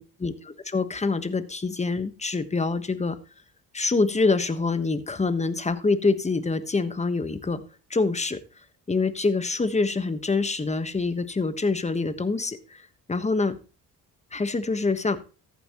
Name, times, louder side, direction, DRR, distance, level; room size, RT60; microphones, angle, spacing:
voice 1, 0.2-3.2 3.7-7.6 7.9-8.4 8.9-13.6 14.3-15.2, left 3 dB, 15° left, 12 dB, 1.3 m, -25 dB
14.0 x 9.5 x 3.0 m, 0.32 s
cardioid pair, 75°, 39 cm